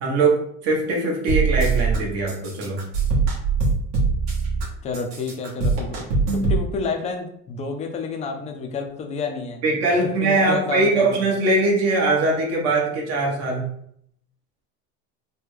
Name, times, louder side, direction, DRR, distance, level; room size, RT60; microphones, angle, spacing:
voice 1, 0.0-2.8 9.6-13.7, right 2 dB, 50° right, 0 dB, 1.1 m, -21 dB
sound 1, 1.3-2.0 2.3-4.6 4.9-6.6, right 4 dB, 70° right, 1.2 m, -22 dB
voice 2, 4.8-9.6 10.2-11.2, left 4 dB, 20° left, 4 dB, 0.3 m, -30 dB
3.5 x 2.2 x 3.1 m, 0.68 s
supercardioid pair, 140°, 32 cm